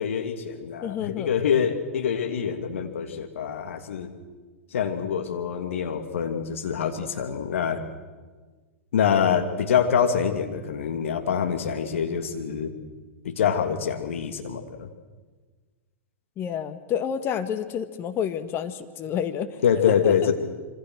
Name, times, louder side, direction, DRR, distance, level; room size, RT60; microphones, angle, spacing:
voice 1, 0.0-4.1 4.7-7.8 8.9-12.7 13.2-14.9 19.6-20.3, left 7 dB, 70° left, 6 dB, 2.8 m, -25 dB
voice 2, 0.8-1.3 16.4-19.6 20.0-20.1, left 8 dB, 30° left, 9 dB, 1.8 m, -29 dB
26.5 x 25.0 x 6.4 m, 1.4 s
hypercardioid pair, 105°, 7 cm